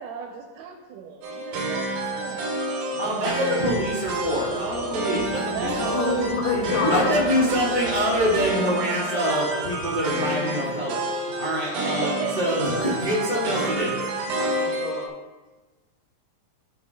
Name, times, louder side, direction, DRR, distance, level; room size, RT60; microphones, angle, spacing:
voice 1, 0.0-1.9 2.2-2.6 2.9-3.1 5.4-6.4 6.7-7.1 7.4-7.6 11.8-12.6, right 6 dB, 85° right, 0 dB, 3.4 m, -34 dB
sound 1, 1.2-15.1, right 1 dB, 70° right, 2.6 m, -29 dB
sound 2, 2.9-8.5, left 1 dB, 60° left, 4.9 m, -44 dB
voice 2, 3.0-5.9 6.5-14.5, equal, 20° left, -8 dB, 1.3 m, -26 dB
voice 3, 5.6-7.7 13.1-13.8 14.3-15.1, left 5 dB, 90° left, 1 dB, 3.7 m, -29 dB
14.5 x 5.8 x 2.3 m, 1.3 s
omnidirectional pair, 5.7 m